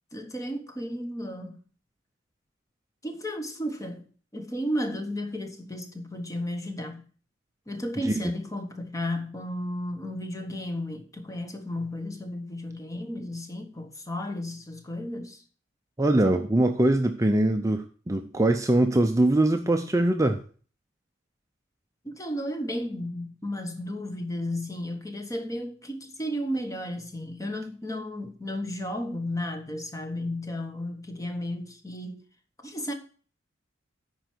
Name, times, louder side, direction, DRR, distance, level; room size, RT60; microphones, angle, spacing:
voice 1, 0.1-1.6 3.0-7.1 7.7-15.4 22.0-32.2 32.6-32.9, left 1 dB, 15° left, 1.1 m, -33 dB
voice 2, 16.0-20.4, right 1 dB, 15° right, 0.5 m, -22 dB
10.0 x 4.6 x 6.0 m
head